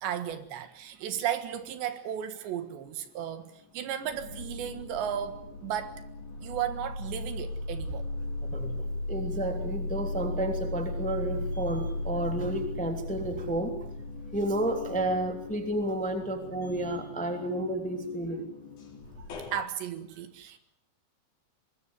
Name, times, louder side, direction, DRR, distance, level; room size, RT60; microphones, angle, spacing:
voice 1, 0.0-6.0 6.4-8.0 19.5-20.6, right 9 dB, 70° right, 10 dB, 3.6 m, -34 dB
sound 1, 2.5-3.3 3.7-19.6, left 2 dB, 45° left, 4.8 m, -37 dB
voice 2, 8.4-13.8 14.3-18.5, right 1 dB, ahead, 5 dB, 1.8 m, -31 dB
24.5 x 21.0 x 8.3 m, 0.69 s
omnidirectional pair, 5.4 m